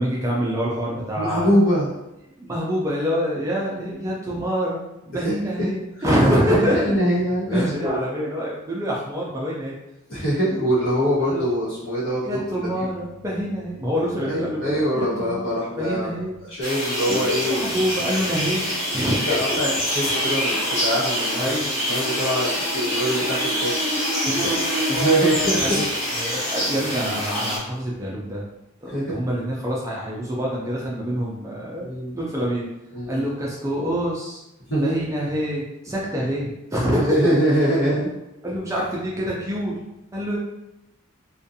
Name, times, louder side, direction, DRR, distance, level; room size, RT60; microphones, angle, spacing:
voice 1, 0.0-1.5 2.4-6.9 7.5-9.7 11.3-11.4 12.2-15.5 15.8-16.4 17.1-19.6 21.4-21.7 24.2-24.6 25.6-25.8 26.1-28.4 28.8-31.9 32.1-32.7 33.1-34.4 34.8-37.3 38.4-39.8 40.1-40.4, equal, 15° right, -4 dB, 0.4 m, -26 dB
voice 2, 1.1-1.9 5.1-5.2 5.6-5.7 6.7-8.0 10.1-12.8 14.2-16.1 16.5-17.6 19.0-21.5 21.8-24.1 24.9-25.9 28.9-29.2 31.8-32.1 32.9-33.2 34.7-35.0 36.1-36.2 36.9-38.1 38.4-38.5, equal, 70° left, -11 dB, 1.0 m, -23 dB
sound 1, 16.6-27.6, equal, 30° left, 0.8 m, -25 dB
2.5 x 2.2 x 2.6 m, 0.91 s
head